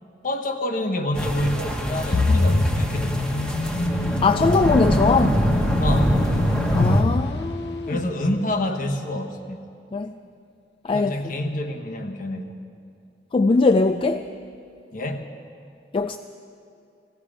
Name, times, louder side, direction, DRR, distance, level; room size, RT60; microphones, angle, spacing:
voice 1, 0.2-3.3 5.8-6.2 7.9-9.6 10.9-12.6 14.9-15.3, left 1 dB, 50° left, 5 dB, 1.1 m, -28 dB
sound 1, 1.1-7.0, equal, 5° left, 1.1 m, -24 dB
sound 2, 2.1-8.1, left 2 dB, 70° left, 0.8 m, -25 dB
voice 2, 4.2-5.4 6.7-8.0 9.9-10.1 10.8-11.2 13.3-14.3 15.9-16.2, left 3 dB, 30° left, 8 dB, 0.3 m, -21 dB
16.5 x 16.0 x 5.1 m, 2.5 s
head